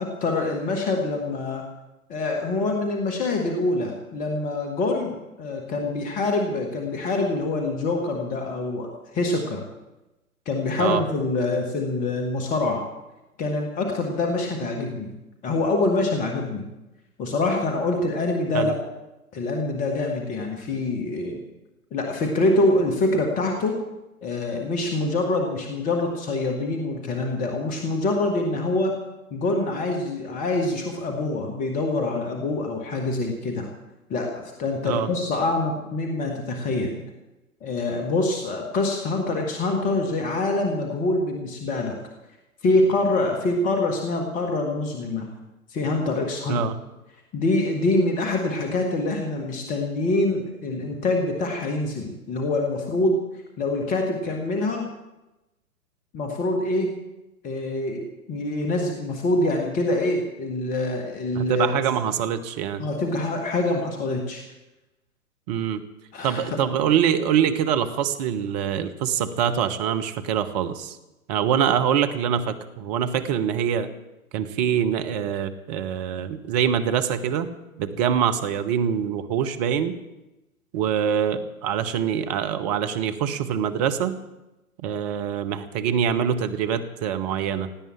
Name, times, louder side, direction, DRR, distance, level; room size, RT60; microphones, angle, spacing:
voice 1, 0.0-1.6 2.1-9.6 10.4-12.8 13.4-15.1 15.4-16.7 17.2-18.7 19.3-21.4 21.9-23.8 24.2-28.9 29.3-33.7 34.1-37.0 37.6-41.9 42.6-45.3 45.7-46.6 47.3-53.2 53.6-54.9 56.1-56.9 57.4-61.7 62.8-64.4 66.1-66.4, left 2 dB, 15° left, 3 dB, 1.7 m, -25 dB
voice 2, 61.3-62.9 65.5-65.8 66.2-71.0 71.3-73.9 74.3-77.5 77.8-80.0 80.7-84.2 84.8-87.7, right 8 dB, 30° right, 10 dB, 1.0 m, -24 dB
17.5 x 9.1 x 8.7 m, 0.98 s
figure-of-eight pair, 120°, 44 cm